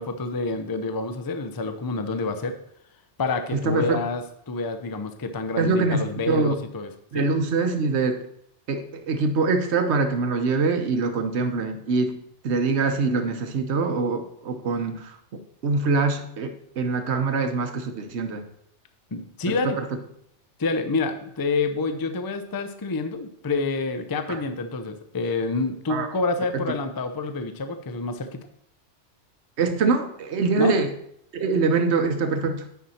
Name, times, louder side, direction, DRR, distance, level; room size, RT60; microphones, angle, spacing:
voice 1, 0.0-2.5 3.2-7.2 19.1-19.8 20.6-28.4 30.6-30.8, left 3 dB, 25° left, 8 dB, 0.5 m, -28 dB
voice 2, 3.5-4.0 5.6-6.6 7.1-8.2 8.7-12.2 12.4-15.2 15.6-18.4 19.4-19.8 24.3-24.4 25.9-26.1 26.5-26.6 29.6-30.9 31.3-32.6, right 4 dB, 70° right, 7 dB, 1.2 m, -24 dB
9.4 x 5.6 x 4.2 m, 0.71 s
omnidirectional pair, 1.2 m